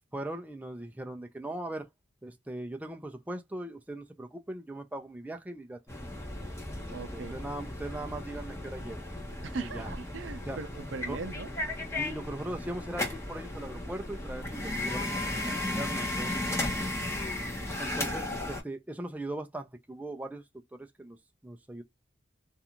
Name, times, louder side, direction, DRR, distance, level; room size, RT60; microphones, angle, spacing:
voice 1, 0.1-1.9 2.2-5.8 6.9-9.1 9.6-9.9 10.5-10.6 11.1-11.2 11.9-15.2 15.5-16.7 17.8-20.4 20.7-21.2 21.4-21.8, right 1 dB, 10° right, 0.4 m, -39 dB
sound 1, 5.9-18.6, left 1 dB, 15° left, 0.8 m, -35 dB
voice 2, 6.9-7.3 9.4-11.5, right 4 dB, 70° right, 0.5 m, -39 dB
2.5 x 2.3 x 2.8 m
head